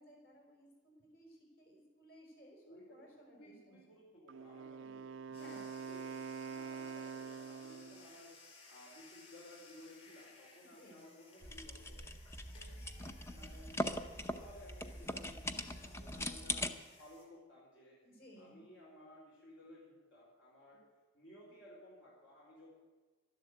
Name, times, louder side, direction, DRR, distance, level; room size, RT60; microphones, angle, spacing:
voice 1, 0.0-3.8 4.7-5.6 10.6-11.1 18.0-18.6, equal, 50° left, 0 dB, 5.0 m, -60 dB
voice 2, 2.7-8.4 8.7-12.1 12.5-18.0 18.4-20.9 21.1-22.7, left 1 dB, 65° left, -4 dB, 4.2 m, -57 dB
Wind instrument woodwind instrument, 4.3-8.1, right 5 dB, 70° right, 0.5 m, -45 dB
sound 1, 5.3-17.2, left 3 dB, 30° left, 4.9 m, -61 dB
sound 2, 11.4-16.7, left 1 dB, 15° left, 0.7 m, -41 dB
12.5 x 11.0 x 8.2 m, 1.4 s
head